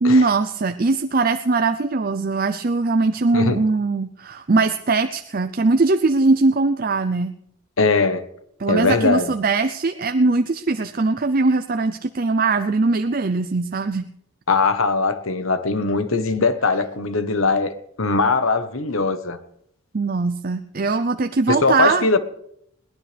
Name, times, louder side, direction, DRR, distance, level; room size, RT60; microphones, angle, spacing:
voice 1, 0.0-7.3 8.6-14.0 19.9-22.1, right 3 dB, 40° right, 0.5 m, -20 dB
voice 2, 3.3-3.6 7.8-8.2 8.7-9.3 14.5-19.4 21.5-22.2, left 3 dB, 70° left, 1.1 m, -20 dB
21.5 x 17.0 x 3.4 m
head